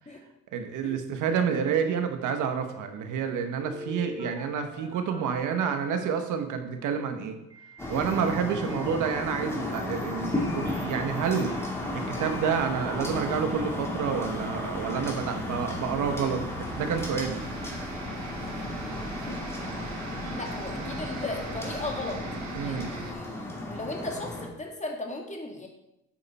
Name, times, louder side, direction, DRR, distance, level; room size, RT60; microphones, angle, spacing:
voice 1, 0.5-7.4 7.9-11.6 11.9-17.5 22.5-22.9, right 7 dB, 85° right, 7 dB, 1.2 m, -29 dB
Telephone, 3.6-6.1 7.5-20.3, equal, 15° right, 2.3 m, -47 dB
sound 1, 7.8-24.5, left 2 dB, 10° left, 2.5 m, -34 dB
sound 2, 10.5-23.1, right 4 dB, 65° right, 1.5 m, -43 dB
voice 2, 20.3-22.2 22.6-25.7, left 2 dB, 25° left, 0 dB, 1.8 m, -36 dB
8.9 x 6.7 x 4.2 m, 0.86 s
cardioid pair, 90°, 30 cm